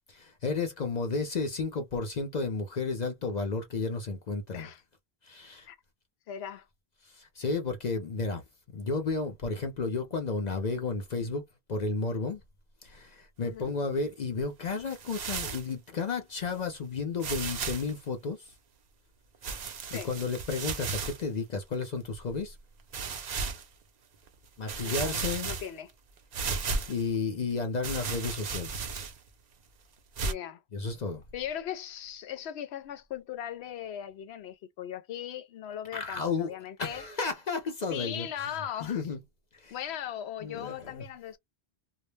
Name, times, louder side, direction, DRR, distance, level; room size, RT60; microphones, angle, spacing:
voice 1, 0.1-4.7 5.3-5.7 7.1-8.4 8.7-11.4 11.7-12.4 12.8-18.4 19.9-22.6 24.6-25.5 26.9-28.9 30.7-31.2 35.9-36.5 36.8-38.3 38.8-39.2 39.5-39.7 40.4-41.0, left 4 dB, 50° left, 0.6 m, -32 dB
voice 2, 6.3-6.7 13.4-13.7 19.9-20.1 24.8-25.9 30.2-30.6 31.3-37.1 37.9-39.1 39.7-41.4, left 10 dB, 80° left, 0.8 m, -39 dB
sound 1, 14.9-15.7 16.5-16.6 17.2-17.9 19.4-21.2 21.8-21.9 22.9-23.6 24.3-24.4 24.7-25.9 26.3-27.1 27.8-29.3 30.2-30.3, right 5 dB, 50° right, 0.6 m, -34 dB
2.2 x 2.0 x 3.1 m
omnidirectional pair, 1.1 m